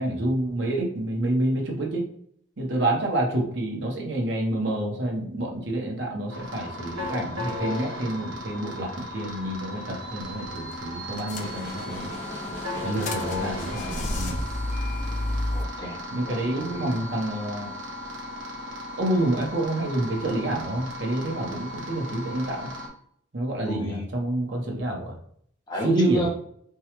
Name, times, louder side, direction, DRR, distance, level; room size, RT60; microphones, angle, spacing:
voice 1, 0.0-2.1 2.6-12.1 12.8-14.4 16.1-17.7 19.0-22.7 23.3-25.1 25.8-26.2, right 1 dB, 60° right, -1 dB, 1.0 m, -28 dB
sound 1, 6.3-22.9, left 1 dB, 85° right, 1.0 m, -36 dB
sound 2, 10.2-10.5 10.7-10.8 11.2-12.0 12.5-15.6, left 1 dB, 40° left, 0.4 m, -31 dB
sound 3, 11.4-14.5, left 1 dB, 60° left, 1.2 m, -38 dB
voice 2, 15.5-16.9 23.7-24.1 25.7-26.3, equal, 20° left, -3 dB, 1.0 m, -31 dB
4.5 x 2.3 x 3.0 m, 0.66 s
head